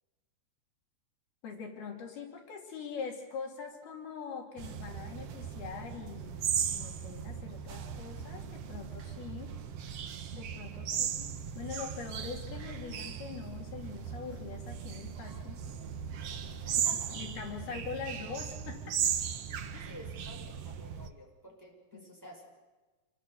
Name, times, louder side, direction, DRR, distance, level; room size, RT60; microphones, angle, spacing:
voice 1, 1.4-9.5 10.3-11.3 11.6-15.6 17.1-18.8 19.7-19.9 21.9-22.1, left 6 dB, 75° left, 1 dB, 4.7 m, -43 dB
sound 1, 4.6-21.1, right 8 dB, 85° right, 1.3 m, -37 dB
voice 2, 16.6-17.2 17.7-17.8 19.8-22.4, equal, 5° right, 0 dB, 5.5 m, -51 dB
28.0 x 22.5 x 7.0 m, 1.2 s
omnidirectional pair, 4.5 m